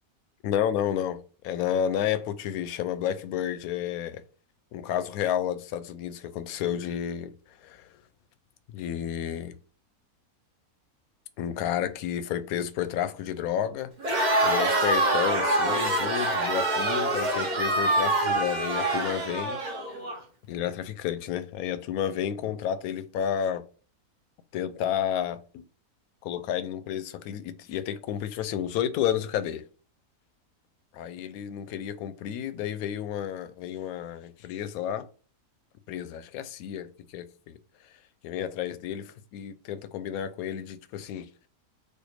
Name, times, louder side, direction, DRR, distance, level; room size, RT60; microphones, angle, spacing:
voice 1, 0.4-4.2 4.7-7.3 7.6-7.9 8.7-9.5 11.4-13.9 14.4-19.6 20.5-23.6 24.5-25.6 26.2-29.6 30.9-35.1 35.9-37.6 38.2-41.3, left 9 dB, 75° left, 1.0 m, -31 dB
Crowd, 14.0-20.2, right 2 dB, 40° right, 0.7 m, -25 dB
4.4 x 2.5 x 4.8 m
omnidirectional pair, 1.6 m